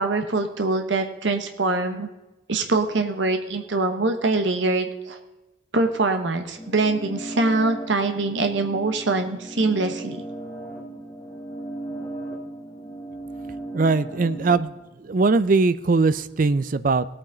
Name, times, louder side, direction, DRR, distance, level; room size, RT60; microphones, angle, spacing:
voice 1, 0.0-2.1 2.5-5.2 5.7-10.2, right 3 dB, 75° right, 6 dB, 1.0 m, -23 dB
sound 1, 6.6-14.6, right 1 dB, 10° left, 1.9 m, -36 dB
voice 2, 13.7-17.1, right 3 dB, 45° right, 15 dB, 0.5 m, -21 dB
18.5 x 8.8 x 3.9 m, 1.1 s
head